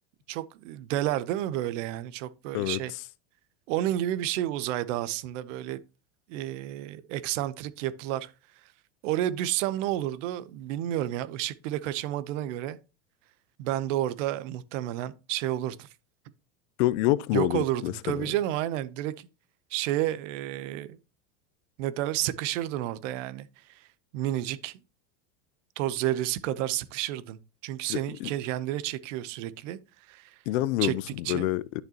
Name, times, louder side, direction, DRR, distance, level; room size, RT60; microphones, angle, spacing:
voice 1, 0.3-2.9 3.7-5.8 6.3-8.3 9.0-12.8 13.6-15.9 17.3-19.3 19.7-21.0 21.8-23.5 23.7-23.8 24.1-24.7 25.8-29.8 30.1-30.3 30.8-30.9 31.2-31.5, right 13 dB, 65° right, 0.9 m, -30 dB
voice 2, 16.8-18.3 27.9-28.3 30.5-31.8, left 15 dB, 65° left, 0.6 m, -27 dB
11.0 x 6.6 x 2.9 m
supercardioid pair, 135°, 40 cm